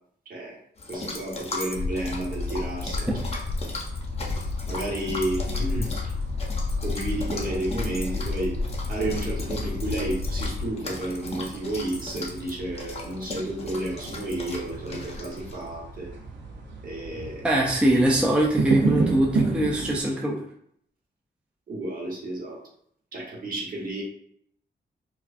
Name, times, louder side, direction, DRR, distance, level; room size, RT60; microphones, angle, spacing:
voice 1, 0.3-0.6 0.9-3.4 4.7-6.1 6.8-8.6 8.9-16.1 16.8-17.5 21.7-22.6 23.1-24.0, right 1 dB, 50° right, -3 dB, 1.1 m, -31 dB
sound 1, 0.8-15.7, left 2 dB, 35° left, 0.7 m, -38 dB
sound 2, 1.7-10.7, left 3 dB, 80° left, 0.7 m, -31 dB
sound 3, 2.1-20.0, right 4 dB, 85° right, 0.7 m, -34 dB
voice 2, 17.4-20.4, right 1 dB, 5° right, -2 dB, 0.4 m, -22 dB
4.5 x 2.2 x 2.6 m, 0.68 s
wide cardioid pair, 145°, 18 cm